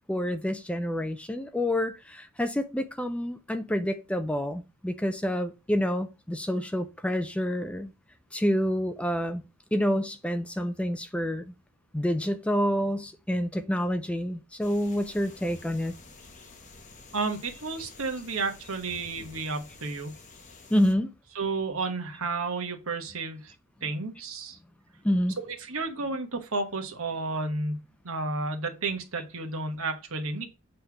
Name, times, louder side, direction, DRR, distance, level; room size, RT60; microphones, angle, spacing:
voice 1, 0.1-7.9 8.3-9.4 9.7-11.4 11.9-16.0 20.7-21.1 23.8-23.9 25.0-25.4, equal, 5° left, 0.4 m, -28 dB
sound 1, 14.6-20.9, left 3 dB, 35° left, 1.1 m, -50 dB
voice 2, 17.1-20.1 21.3-23.5 23.8-24.6 25.5-30.5, right 3 dB, 65° right, 1.3 m, -32 dB
7.8 x 3.4 x 5.8 m
head